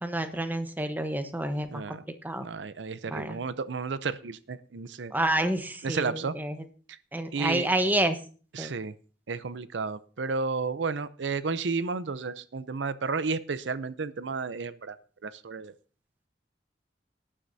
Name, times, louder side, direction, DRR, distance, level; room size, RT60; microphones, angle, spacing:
voice 1, 0.0-2.0 2.2-2.5 3.1-3.4 5.1-6.6 7.1-8.2 8.6-8.7, right 1 dB, 10° right, 8 dB, 0.9 m, -29 dB
voice 2, 1.7-2.0 2.4-5.1 5.8-6.3 7.3-7.7 8.5-8.9 9.3-15.0 15.2-15.7, right 4 dB, 75° right, 15 dB, 0.6 m, -32 dB
18.5 x 9.9 x 2.7 m, 0.39 s
head